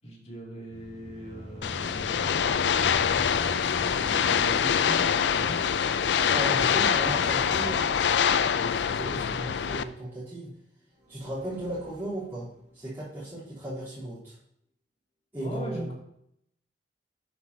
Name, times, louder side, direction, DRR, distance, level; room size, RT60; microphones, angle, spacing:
voice 1, 0.0-2.9 3.6-5.8 15.4-15.9, equal, 40° left, -2 dB, 2.6 m, -40 dB
sound 1, 0.7-10.3 10.9-13.0, equal, 45° right, 2.7 m, -45 dB
sound 2, 1.6-9.8, left 7 dB, 80° left, 0.4 m, -25 dB
voice 2, 6.3-7.9 8.3-10.5 11.1-12.5 12.7-14.4 15.3-15.9, right 1 dB, 15° right, -14 dB, 3.4 m, -36 dB
10.5 x 8.3 x 2.8 m, 0.73 s
head